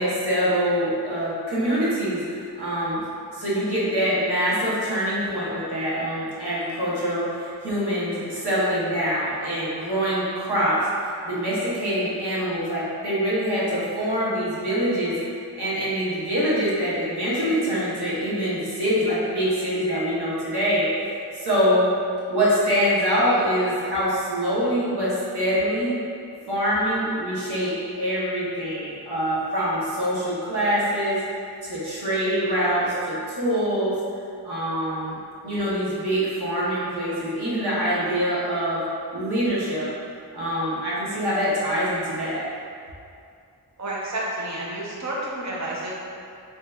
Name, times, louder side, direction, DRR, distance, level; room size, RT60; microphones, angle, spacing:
voice 1, 0.0-3.0 3.3-15.2 15.6-20.9 21.4-21.9 22.3-25.9 26.5-31.2 31.6-33.9 34.4-35.2 35.4-38.8 39.1-39.9 40.3-42.4, equal, 85° right, -8 dB, 0.9 m, -24 dB
voice 2, 43.8-45.9, right 1 dB, 45° right, -5 dB, 0.6 m, -30 dB
3.1 x 2.8 x 2.3 m, 2.4 s
wide cardioid pair, 65°, 39 cm